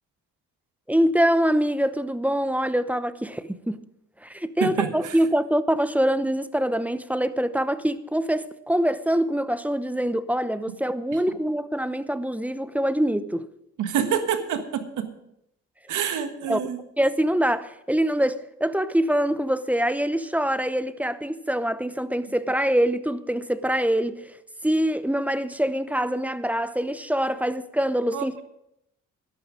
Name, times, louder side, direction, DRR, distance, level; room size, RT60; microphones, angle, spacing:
voice 1, 0.9-3.8 4.2-13.5 16.5-16.6 17.0-24.4 24.6-28.4, equal, 5° right, 0.7 m, -24 dB
voice 2, 4.6-5.1 13.8-15.1 15.9-16.8 28.1-28.4, right 8 dB, 80° right, 1.5 m, -27 dB
12.5 x 11.5 x 5.1 m
cardioid pair, 75°, 31 cm